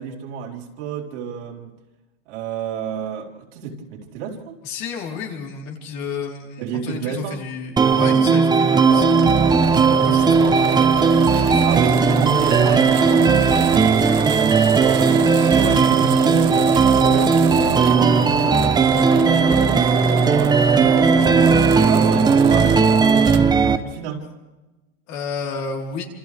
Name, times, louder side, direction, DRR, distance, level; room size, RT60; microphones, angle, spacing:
voice 1, 0.0-1.7 2.3-4.6 6.6-7.4 8.6-9.1 11.6-18.7 19.1-23.2 23.6-24.3, right 7 dB, 75° right, -1 dB, 4.2 m, -30 dB
voice 2, 4.6-9.2 9.9-11.0 11.3-11.6 25.1-26.1, left 5 dB, 50° left, 0 dB, 4.3 m, -31 dB
sound 1, 7.8-23.8, right 5 dB, 10° right, 0.9 m, -16 dB
sound 2, 8.9-23.6, right 15 dB, 45° right, 0.9 m, -28 dB
27.5 x 27.0 x 3.6 m, 1.1 s
supercardioid pair, 135°, 35 cm